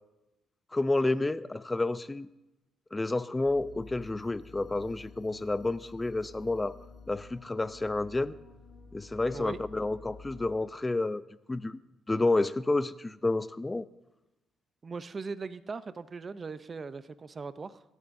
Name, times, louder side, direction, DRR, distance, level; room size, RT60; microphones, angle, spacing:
voice 1, 0.7-2.3 2.9-6.7 7.1-8.3 8.9-11.2 11.5-11.8 12.1-13.9, left 2 dB, 15° left, 15 dB, 0.5 m, -30 dB
sound 1, 3.5-10.5, left 4 dB, 55° left, 2.5 m, -51 dB
voice 2, 14.8-17.8, right 4 dB, 35° right, 13 dB, 0.6 m, -39 dB
25.5 x 11.0 x 2.6 m, 0.98 s
cardioid pair, 90°, 0 cm